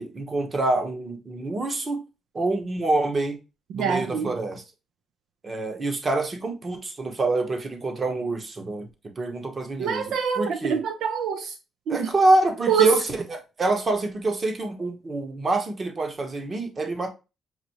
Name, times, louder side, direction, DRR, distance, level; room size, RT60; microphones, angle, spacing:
voice 1, 0.0-2.0 2.3-3.4 3.7-4.6 5.4-8.9 9.2-10.8 11.9-17.1, right 2 dB, 35° right, 1.0 m, -26 dB
voice 2, 3.7-4.3 9.8-11.5 11.9-12.1 12.7-13.0, right 6 dB, 80° right, 0.5 m, -25 dB
5.8 x 2.7 x 2.9 m
cardioid pair, 90°, 0 cm